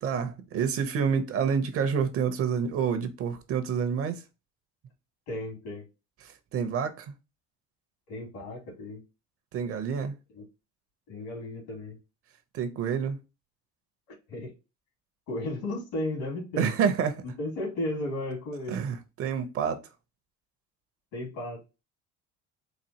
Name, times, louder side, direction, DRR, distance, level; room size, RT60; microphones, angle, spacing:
voice 1, 0.0-4.2 6.2-7.1 9.5-10.2 12.5-13.2 16.6-17.3 18.7-19.9, right 7 dB, 50° right, 0.7 m, -28 dB
voice 2, 5.3-5.8 8.1-9.0 10.3-10.4 11.1-12.0 14.3-14.5 15.3-16.7 17.2-18.8 21.1-21.6, left 1 dB, 75° left, 2.3 m, -34 dB
4.1 x 2.6 x 2.8 m
cardioid pair, 130°, 29 cm